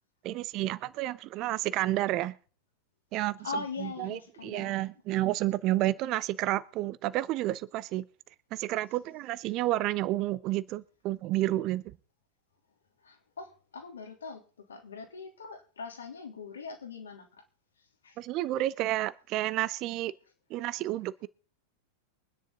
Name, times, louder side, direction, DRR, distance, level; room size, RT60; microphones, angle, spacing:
voice 1, 0.2-2.3 3.1-3.4 3.8-8.0 8.5-11.8 18.2-20.1 20.5-21.3, right 15 dB, 40° right, 0.7 m, -30 dB
voice 2, 3.4-4.8 13.0-17.4 17.8-18.2, left 4 dB, 70° left, 3.1 m, -41 dB
23.0 x 10.0 x 3.8 m
figure-of-eight pair, 90°, 0 cm